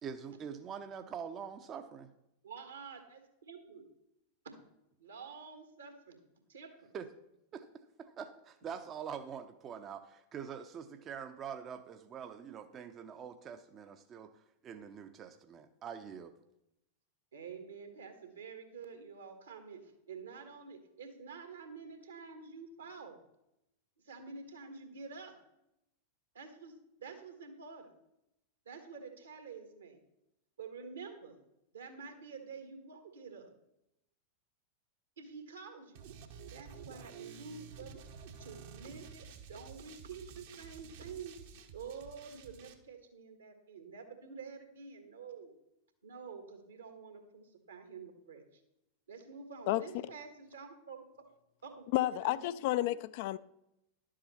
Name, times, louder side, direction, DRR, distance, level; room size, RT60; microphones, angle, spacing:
voice 1, 0.0-2.1 6.9-7.1 7.5-16.3, right 7 dB, 30° right, 0.6 m, -45 dB
voice 2, 2.4-3.2 3.5-3.8 5.0-6.2 6.5-6.9 17.3-23.2 24.0-25.3 26.3-27.9 28.6-30.0 30.6-31.4 31.7-33.5 35.2-36.1 36.5-38.0 38.4-41.4 41.7-45.5 46.0-48.6 49.1-51.0 51.6-52.9, right 5 dB, 70° right, 1.6 m, -48 dB
sound 1, 35.9-42.7, right 6 dB, 55° right, 1.0 m, -51 dB
voice 3, 51.9-53.4, left 15 dB, 50° left, 0.3 m, -31 dB
11.5 x 7.4 x 4.3 m
figure-of-eight pair, 90°, 0 cm